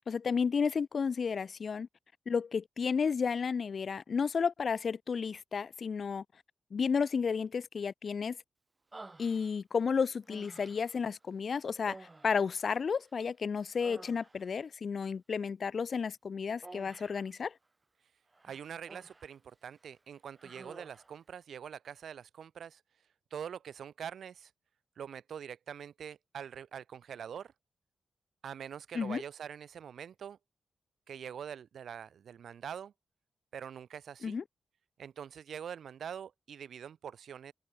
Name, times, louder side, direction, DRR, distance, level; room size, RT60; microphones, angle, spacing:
voice 1, 0.0-1.9 2.3-6.2 6.7-8.4 9.2-17.5 28.9-29.2 34.2-34.4, left 6 dB, 50° left, 0.4 m, -32 dB
Human voice, 8.9-9.8 10.3-11.0 11.8-13.2 13.6-14.6 16.6-17.3 18.3-19.4 19.7-19.9 20.4-21.2, right 2 dB, 20° right, 2.2 m, -52 dB
voice 2, 18.4-22.8 23.3-24.5 25.0-27.5 28.4-30.4 31.1-32.9 33.5-34.4 35.0-37.5, right 8 dB, 75° right, 2.2 m, -44 dB
open air
wide cardioid pair, 140°, 0 cm